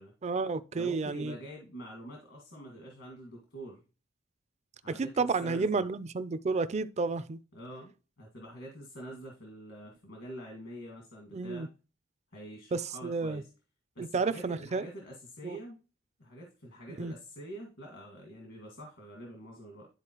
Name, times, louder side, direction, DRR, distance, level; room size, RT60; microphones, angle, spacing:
voice 1, 0.2-1.3 4.9-7.4 11.3-11.7 12.7-13.4 14.0-14.9 15.4-15.6 17.0-17.1, right 4 dB, 35° right, 0.4 m, -31 dB
voice 2, 0.7-3.8 4.8-5.8 7.5-11.7 12.3-13.5 14.0-15.8 16.2-19.9, equal, 70° left, 1.9 m, -46 dB
11.5 x 4.1 x 3.0 m
head